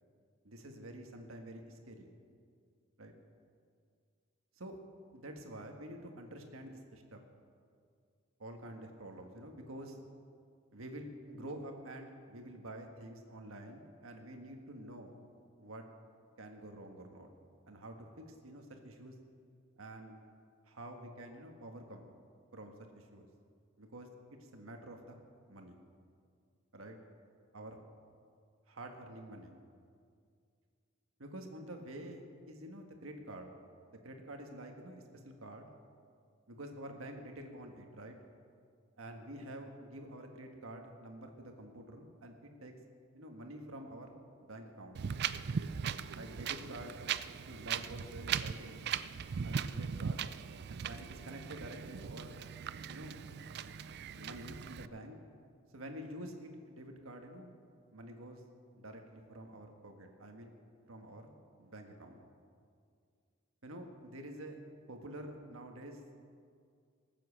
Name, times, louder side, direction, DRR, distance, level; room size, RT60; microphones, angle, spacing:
voice 1, 0.4-2.1 3.0-3.1 4.6-4.8 5.1-7.2 8.4-10.0 10.7-15.2 15.6-15.8 16.4-17.3 17.7-19.1 19.8-20.2 20.7-22.1 22.5-23.3 23.8-24.1 24.5-25.2 25.5-25.8 26.7-27.0 27.5-27.8 28.7-29.6 31.2-32.2 32.5-33.5 33.9-35.7 36.5-38.2 39.0-42.7 43.1-44.1 44.4-45.0 46.1-47.0 47.5-48.9 49.4-50.3 50.9-52.3 52.9-53.2 54.1-55.2 55.7-57.5 57.9-58.4 58.7-60.5 60.9-61.3 61.6-62.2 63.6-64.6 64.9-66.0, right 1 dB, 80° right, 4 dB, 1.6 m, -48 dB
Wind, 44.9-54.9, right 7 dB, 55° right, 0.4 m, -39 dB
19.5 x 7.6 x 7.3 m, 2.2 s
head